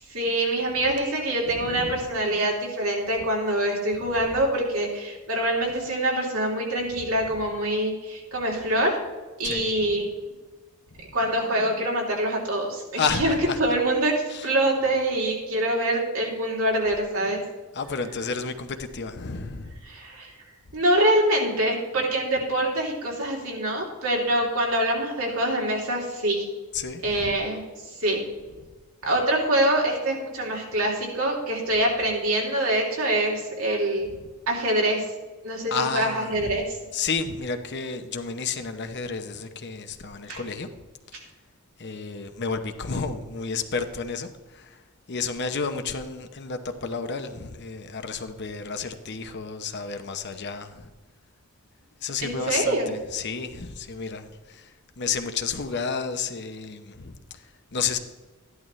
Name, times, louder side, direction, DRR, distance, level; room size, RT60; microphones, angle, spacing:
voice 1, 0.1-9.0 9.4-10.0 11.1-17.4 19.9-20.3 20.7-26.4 27.0-27.6 28.0-28.2 29.0-34.1 34.5-35.0 35.4-36.8 40.3-40.4 52.2-52.9, right 1 dB, 75° right, -1 dB, 3.2 m, -25 dB
voice 2, 1.5-2.0 4.0-4.3 7.0-7.1 9.4-9.9 10.9-11.1 13.0-13.6 14.3-14.5 17.7-19.8 26.7-27.4 34.0-34.3 35.7-36.6 36.9-40.7 41.1-41.3 41.8-44.8 45.1-50.9 52.0-58.0, left 5 dB, 50° left, 7 dB, 0.8 m, -31 dB
14.0 x 11.0 x 3.2 m, 1.2 s
head